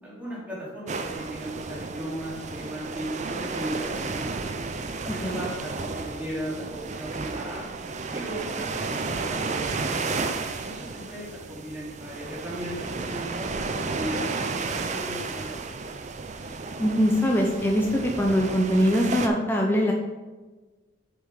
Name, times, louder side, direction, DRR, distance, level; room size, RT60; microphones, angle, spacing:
voice 1, 0.0-4.5 5.0-7.6 8.1-10.2 10.6-15.8, equal, 10° right, -7 dB, 2.6 m, -37 dB
sound 1, 0.9-19.3, right 4 dB, 35° right, 0.5 m, -32 dB
voice 2, 16.8-19.9, equal, 10° left, -1 dB, 0.6 m, -22 dB
6.8 x 5.3 x 4.9 m, 1.3 s
head